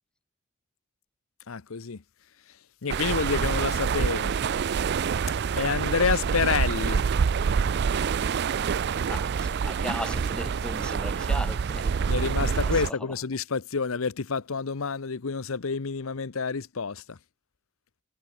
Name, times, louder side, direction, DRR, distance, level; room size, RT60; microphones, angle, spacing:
voice 1, 1.5-2.0 2.8-4.3 5.6-7.1 12.1-17.2, left 5 dB, 70° left, 0.8 m, -28 dB
sound 1, 2.9-12.9, right 6 dB, 50° right, 0.4 m, -26 dB
voice 2, 9.1-13.1, left 1 dB, 5° left, 3.3 m, -38 dB
head